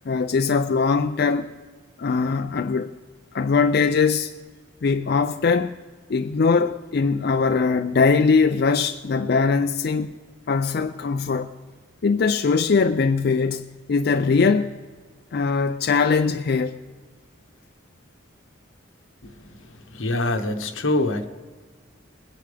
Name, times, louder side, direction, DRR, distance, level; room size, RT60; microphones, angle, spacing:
voice 1, 0.1-1.5 2.0-2.9 3.3-4.3 4.8-5.7 6.1-10.1 10.5-11.5 12.0-14.7 15.3-16.8, left 4 dB, 55° left, 0.4 m, -21 dB
voice 2, 19.9-21.3, left 2 dB, 85° left, 1.1 m, -24 dB
21.0 x 10.5 x 3.4 m
head